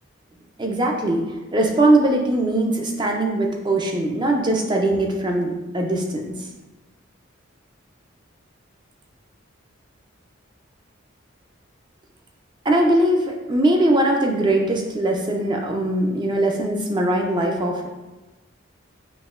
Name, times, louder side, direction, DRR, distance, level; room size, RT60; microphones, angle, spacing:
voice 1, 0.6-6.3 12.6-17.9, right 1 dB, 20° right, 1 dB, 0.5 m, -21 dB
6.1 x 2.8 x 2.4 m, 1.1 s
head